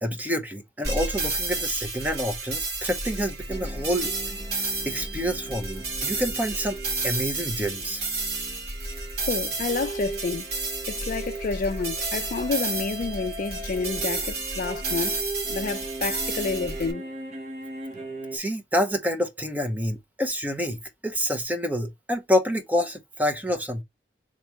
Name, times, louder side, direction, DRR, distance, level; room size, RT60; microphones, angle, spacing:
voice 1, 0.0-4.1 4.5-6.8 7.0-8.0 18.3-23.8, equal, 10° right, 0.7 m, -28 dB
sound 1, 0.8-16.9, right 3 dB, 60° right, 1.9 m, -31 dB
sound 2, 3.5-18.4, right 2 dB, 40° right, 1.1 m, -39 dB
voice 2, 9.3-10.5 10.9-15.2 15.5-17.0, left 4 dB, 50° left, 0.4 m, -29 dB
3.6 x 3.1 x 4.5 m
head